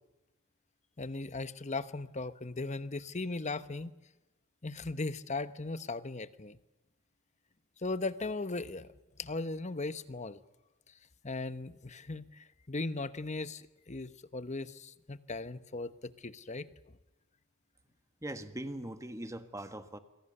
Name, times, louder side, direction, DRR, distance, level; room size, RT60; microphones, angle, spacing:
voice 1, 1.0-3.9 4.6-6.6 7.8-8.9 9.2-10.4 11.2-16.7, left 3 dB, 35° left, 13 dB, 1.0 m, -38 dB
voice 2, 18.2-20.0, right 1 dB, 15° right, 9 dB, 1.5 m, -41 dB
27.5 x 23.5 x 6.8 m, 1.0 s
head